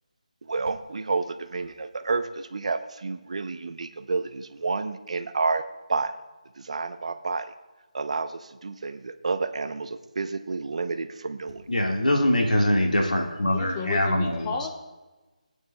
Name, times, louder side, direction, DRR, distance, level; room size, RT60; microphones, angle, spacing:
voice 1, 0.5-5.6 5.9-6.1 6.6-7.5 7.9-11.6, right 4 dB, 55° right, 11 dB, 0.7 m, -30 dB
voice 2, 11.7-14.5, left 1 dB, 85° left, 1 dB, 1.8 m, -23 dB
voice 3, 13.4-14.7, left 5 dB, 20° left, 5 dB, 0.6 m, -32 dB
18.5 x 9.0 x 2.3 m, 1.2 s
figure-of-eight pair, 160°, 4 cm